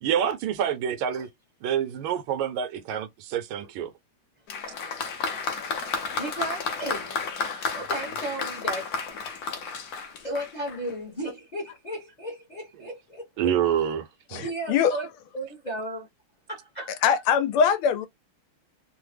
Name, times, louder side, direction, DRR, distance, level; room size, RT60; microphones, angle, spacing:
voice 1, 0.0-1.3 1.6-3.9 13.4-14.5, right 9 dB, 80° right, 1.4 m, -27 dB
Applause, 4.5-10.9, left 4 dB, 65° left, 0.9 m, -32 dB
voice 2, 6.1-7.1 7.5-8.9 10.2-13.3 14.4-15.1 15.3-16.1 16.5-17.1, right 1 dB, 35° left, 0.7 m, -34 dB
voice 3, 14.3-15.0 17.0-18.1, left 7 dB, 90° left, 1.5 m, -22 dB
3.6 x 2.1 x 3.2 m
omnidirectional pair, 2.3 m